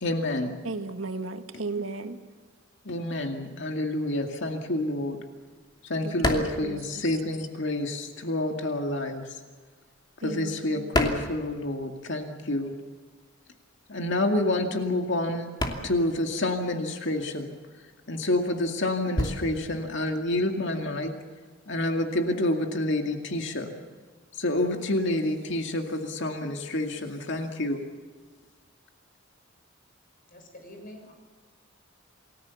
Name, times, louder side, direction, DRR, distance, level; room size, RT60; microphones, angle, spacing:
voice 1, 0.0-0.6 2.8-5.2 5.8-9.4 10.2-12.7 13.9-15.5 15.8-17.5 18.1-21.1 21.7-23.7 24.3-27.8, left 1 dB, 65° left, 4 dB, 2.2 m, -28 dB
voice 2, 0.6-2.2 6.0-6.8 10.2-10.9, right 3 dB, 90° right, 7 dB, 1.9 m, -35 dB
sound 1, 5.8-7.7 8.0-12.1 12.4-21.2, left 1 dB, 20° left, 2.8 m, -33 dB
voice 3, 30.3-31.1, left 1 dB, 45° left, 4 dB, 6.4 m, -46 dB
28.5 x 19.5 x 7.2 m, 1.4 s
head